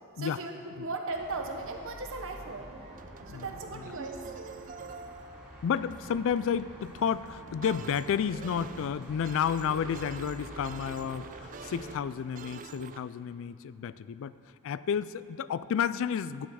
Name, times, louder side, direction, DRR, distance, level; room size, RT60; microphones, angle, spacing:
voice 1, 0.2-2.7 3.3-4.2, right 3 dB, 60° right, 3 dB, 1.1 m, -37 dB
sound 1, 1.1-11.9, equal, 5° right, 2.1 m, -48 dB
sound 2, 2.3-13.0, right 5 dB, 35° right, 0.4 m, -47 dB
voice 2, 3.3-3.8 5.6-14.3 14.6-16.5, left 7 dB, 60° left, 16 dB, 0.3 m, -31 dB
11.5 x 9.3 x 4.8 m, 2.4 s
head